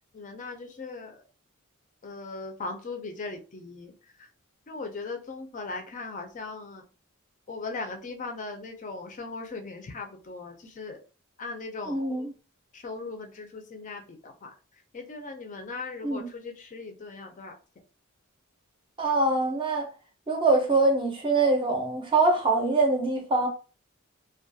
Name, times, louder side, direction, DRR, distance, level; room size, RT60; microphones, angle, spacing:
voice 1, 0.1-1.2 2.0-3.9 4.7-6.8 7.5-11.0 11.4-12.0 12.7-14.5 14.9-17.6, left 3 dB, 35° left, 0.4 m, -38 dB
voice 2, 11.9-12.3 16.0-16.3 19.0-19.9 20.3-23.5, right 3 dB, 25° right, 0.6 m, -24 dB
2.3 x 2.2 x 2.6 m
head